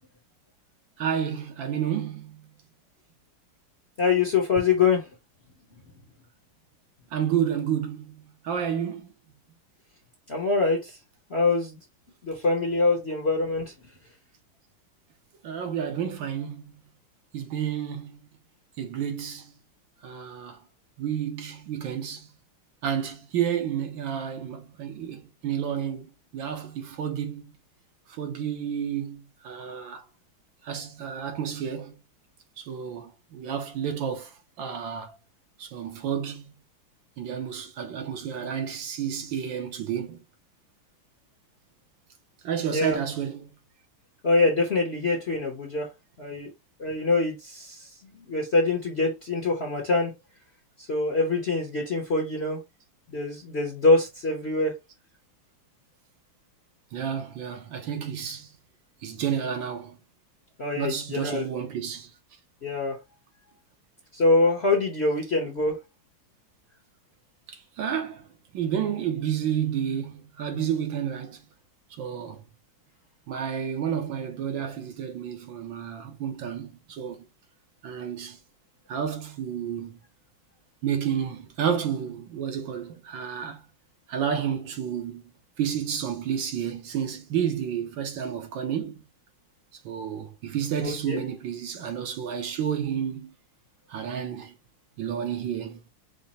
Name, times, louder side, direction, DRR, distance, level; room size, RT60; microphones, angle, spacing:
voice 1, 1.0-2.5 7.1-9.1 15.4-16.7 17.3-18.2 18.8-19.5 20.0-20.6 21.0-22.3 22.8-27.4 28.1-30.0 30.6-32.0 32.6-35.1 35.6-36.6 37.2-40.2 42.4-43.5 56.9-58.5 59.0-60.0 60.8-62.1 67.5-68.3 68.5-71.4 72.0-72.4 73.3-77.2 77.8-78.4 78.9-80.0 80.8-83.6 84.1-85.2 85.6-89.0 89.8-93.3 93.9-94.5 95.0-95.8, right 8 dB, 70° right, 1.5 m, -30 dB
voice 2, 4.0-5.1 10.3-11.0 11.3-11.8 12.2-13.7 42.7-43.0 44.2-45.9 46.2-46.5 46.8-47.9 48.3-50.1 50.8-52.6 53.1-54.7 60.6-61.4 62.6-63.0 64.1-65.8 90.8-91.2, left 3 dB, 45° left, 0.8 m, -24 dB
5.2 x 2.1 x 4.1 m
omnidirectional pair, 2.3 m